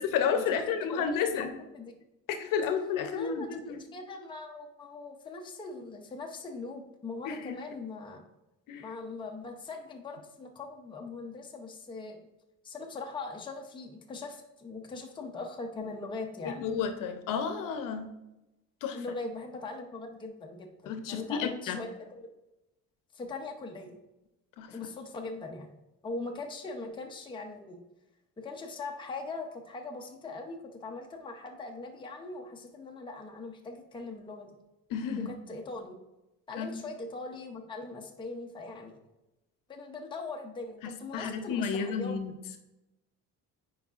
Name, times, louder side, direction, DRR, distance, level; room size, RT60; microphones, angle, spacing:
voice 1, 0.0-1.6 2.3-3.8 7.3-7.6 8.7-8.9 16.4-18.1 18.8-19.0 20.9-21.8 24.6-24.9 34.9-35.3 36.6-36.8 40.8-42.3, left 6 dB, 70° left, 7 dB, 0.8 m, -31 dB
voice 2, 0.9-1.9 3.1-3.6 3.9-8.2 8.8-12.2 12.6-16.6 18.9-22.3 23.1-24.0 24.7-25.7 26.0-27.8 28.4-34.6 35.2-36.0 36.5-39.0 39.7-42.2, left 3 dB, 15° left, 2 dB, 0.6 m, -41 dB
9.4 x 4.7 x 2.4 m, 0.96 s
cardioid pair, 145°, 34 cm